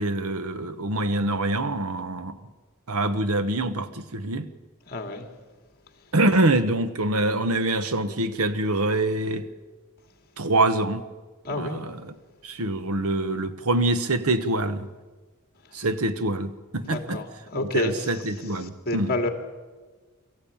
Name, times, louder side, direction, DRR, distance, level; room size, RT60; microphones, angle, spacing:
voice 1, 0.0-2.4 2.9-4.5 6.1-9.4 10.4-11.0 11.6-12.0 12.4-14.9 15.7-17.2 17.5-19.1, right 2 dB, 80° right, 1.2 m, -25 dB
voice 2, 4.9-5.3 11.4-11.8 16.8-18.2 18.9-19.3, left 1 dB, 45° left, 2.6 m, -28 dB
23.5 x 14.5 x 8.7 m
head